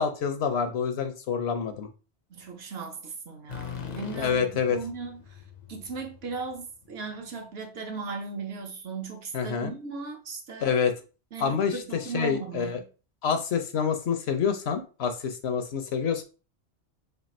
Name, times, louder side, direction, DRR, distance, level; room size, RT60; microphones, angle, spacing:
voice 1, 0.0-1.9 4.1-4.8 9.3-9.7 10.6-10.9 11.4-11.7 12.1-12.8 13.2-16.2, left 6 dB, 70° left, 0.9 m, -27 dB
voice 2, 2.3-5.4 5.7-10.8 11.3-12.8, right 4 dB, 65° right, 1.1 m, -37 dB
sound 1, 3.5-7.3, left 6 dB, 50° left, 0.5 m, -42 dB
3.3 x 2.6 x 4.1 m
omnidirectional pair, 1.1 m